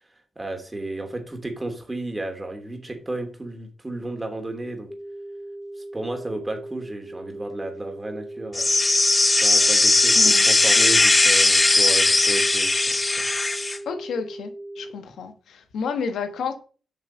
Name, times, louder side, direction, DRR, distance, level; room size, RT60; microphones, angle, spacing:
voice 1, 0.4-4.9 5.9-8.7 9.4-13.3, right 2 dB, 25° right, 2.8 m, -33 dB
sound 1, 4.9-14.9, right 1 dB, 15° left, 2.2 m, -38 dB
sound 2, 8.5-13.8, left 2 dB, 30° left, 0.7 m, -18 dB
voice 2, 13.8-14.5 14.7-16.5, left 5 dB, 75° left, 1.3 m, -30 dB
7.4 x 5.9 x 5.2 m
supercardioid pair, 45°, 0 cm